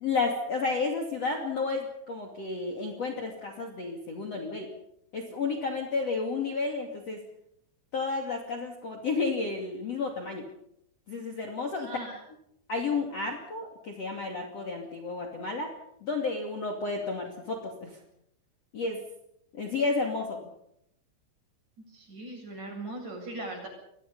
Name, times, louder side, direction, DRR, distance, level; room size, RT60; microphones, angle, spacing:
voice 1, 0.0-4.7 5.1-7.2 7.9-10.4 11.1-11.9 12.7-15.7 16.0-17.9 18.7-19.0 19.5-20.4, left 4 dB, 40° left, 3 dB, 3.0 m, -31 dB
voice 2, 11.8-12.2 21.8-23.7, right 2 dB, 35° right, 1 dB, 9.0 m, -39 dB
29.5 x 22.5 x 5.5 m, 0.76 s
omnidirectional pair, 5.6 m